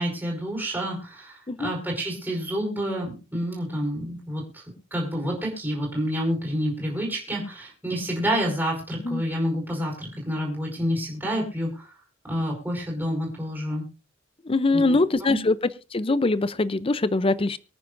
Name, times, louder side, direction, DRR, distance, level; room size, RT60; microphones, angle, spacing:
voice 1, 0.0-4.6 4.9-11.9 12.2-13.8 14.7-15.4, equal, 10° right, -3 dB, 4.4 m, -28 dB
voice 2, 1.5-1.8 9.0-9.2 14.4-15.6 15.9-17.6, left 2 dB, 30° left, 16 dB, 0.6 m, -23 dB
24.0 x 9.3 x 2.6 m, 0.32 s
head